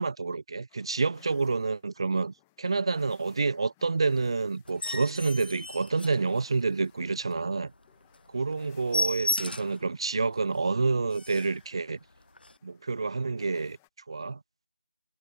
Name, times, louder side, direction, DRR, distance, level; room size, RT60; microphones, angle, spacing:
voice 1, 0.0-7.7 8.3-12.0 12.6-13.8 14.1-14.4, right 4 dB, 30° right, 0.3 m, -28 dB
sound 1, 0.7-13.9, left 21 dB, 10° left, 0.7 m, -65 dB
sound 2, 4.6-6.8 7.2-7.4 7.7-7.8 8.1-8.3 8.5-9.9 10.3-10.4 10.8-10.9 11.1-11.6 12.4-12.5, left 1 dB, 85° left, 0.6 m, -33 dB
figure-of-eight pair, 170°, 5 cm